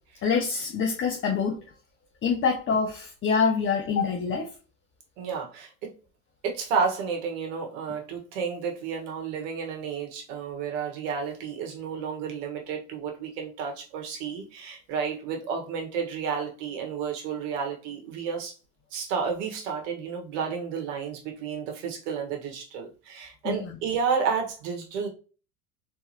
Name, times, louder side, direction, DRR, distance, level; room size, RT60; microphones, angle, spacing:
voice 1, 0.2-1.6 2.2-4.5 23.4-23.7, left 5 dB, 30° left, 2 dB, 1.0 m, -25 dB
voice 2, 5.2-5.9 6.4-18.5 18.9-25.1, right 6 dB, 60° right, 1 dB, 1.8 m, -31 dB
4.4 x 3.4 x 3.0 m, 0.34 s
hypercardioid pair, 95°, 41 cm